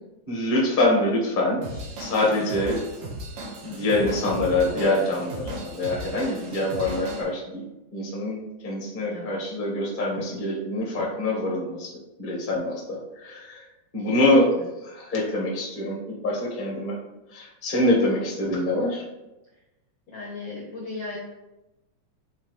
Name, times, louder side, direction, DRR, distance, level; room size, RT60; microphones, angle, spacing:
voice 1, 0.3-1.7 2.0-2.8 3.6-7.7 7.9-11.9 12.2-13.6 13.9-14.5 14.8-17.0 17.3-19.0, left 1 dB, 30° left, -3 dB, 1.0 m, -25 dB
Drum kit / Drum, 1.6-7.2, right 1 dB, 70° right, 2.4 m, -36 dB
voice 2, 2.4-2.7 9.1-9.3 14.0-14.6 18.1-18.3 20.1-21.2, left 3 dB, 60° left, -4 dB, 1.2 m, -37 dB
7.6 x 4.4 x 3.2 m, 0.98 s
omnidirectional pair, 3.6 m